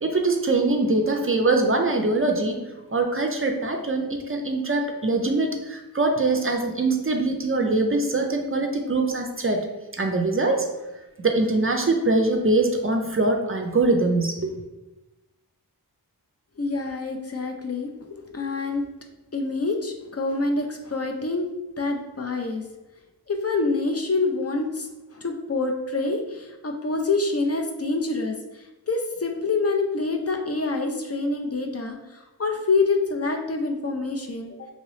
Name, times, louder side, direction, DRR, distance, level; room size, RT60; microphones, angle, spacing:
voice 1, 0.0-2.6 2.9-9.6 9.9-10.7 11.2-14.5, right 2 dB, 35° right, 3 dB, 0.4 m, -23 dB
voice 2, 16.6-18.8 19.3-21.5 21.8-22.6 23.3-34.7, left 3 dB, 40° left, 3 dB, 0.4 m, -26 dB
2.9 x 2.9 x 3.1 m, 1.0 s
wide cardioid pair, 55°, 39 cm